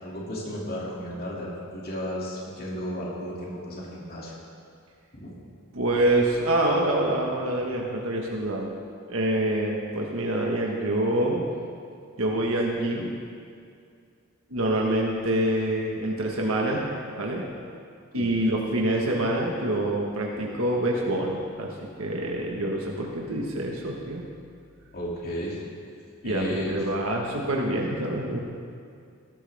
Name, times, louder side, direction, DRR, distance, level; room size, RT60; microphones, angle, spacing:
voice 1, 0.0-4.3 5.1-5.3 18.1-18.3 24.9-25.7 26.2-26.8, equal, 45° left, -5 dB, 2.7 m, -34 dB
voice 2, 5.7-8.7 9.1-11.4 12.2-13.1 14.5-16.8 17.2-17.4 18.1-21.7 22.0-24.2 26.2-28.4, right 1 dB, 80° right, -1 dB, 1.5 m, -26 dB
18.5 x 13.0 x 3.6 m, 2.3 s
head